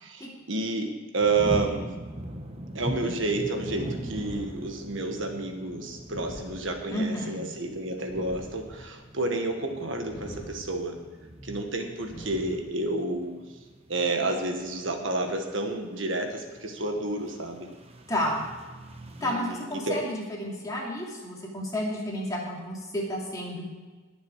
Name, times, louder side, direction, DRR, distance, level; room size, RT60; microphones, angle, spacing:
voice 1, 0.0-1.9 2.7-11.0 11.4-13.3 13.9-17.7 19.2-20.0, right 2 dB, 60° right, 4 dB, 1.5 m, -30 dB
sound 1, 1.2-19.4, right 1 dB, 30° right, 1.0 m, -41 dB
sound 2, 4.0-5.1 6.0-7.1 8.0-9.1 10.0-11.1 12.0-13.1, equal, 45° left, 2.4 m, -44 dB
voice 2, 6.9-7.4 18.1-18.4 19.2-23.6, left 1 dB, 15° left, -3 dB, 2.7 m, -31 dB
20.5 x 7.1 x 4.7 m, 1.4 s
head